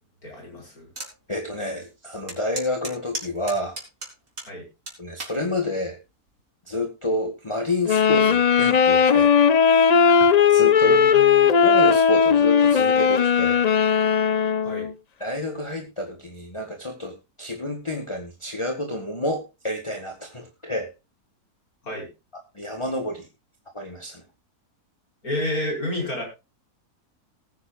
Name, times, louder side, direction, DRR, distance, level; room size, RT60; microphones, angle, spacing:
voice 1, 0.2-0.9 4.5-4.6 10.8-11.5 14.6-14.9 21.8-22.1 25.2-26.2, left 1 dB, 75° left, 0 dB, 6.2 m, -30 dB
sound 1, 1.0-1.1 1.6-1.7 2.3-4.5 4.9-5.4 6.1-6.4, right 2 dB, 60° right, 4.2 m, -34 dB
voice 2, 1.3-3.8 5.0-6.0 6.7-9.3 9.6-9.7 10.5-11.0 11.6-13.6 15.2-20.9 22.5-23.3 23.7-24.2, left 1 dB, 20° left, 2 dB, 1.7 m, -29 dB
sound 2, 7.9-14.9, left 7 dB, 55° left, 0.4 m, -17 dB
19.0 x 9.9 x 2.5 m, 0.27 s
omnidirectional pair, 1.6 m